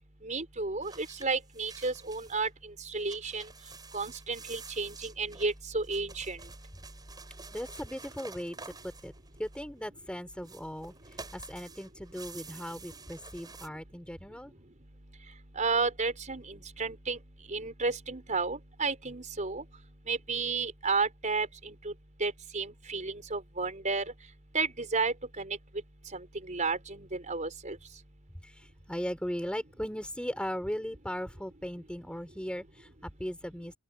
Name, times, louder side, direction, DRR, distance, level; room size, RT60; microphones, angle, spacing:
voice 1, 0.2-3.5 3.9-6.4 15.5-17.2 17.5-19.6 20.1-21.9 22.2-24.1 24.5-25.6 26.1-27.8, right 4 dB, 35° right, 5.0 m, -32 dB
sound 1, 0.8-2.5 2.8-9.8 10.4-13.7, right 4 dB, 20° right, 7.4 m, -49 dB
voice 2, 7.5-9.1 9.4-10.9 11.3-14.5 28.4-33.7, equal, 5° left, 4.7 m, -38 dB
open air
head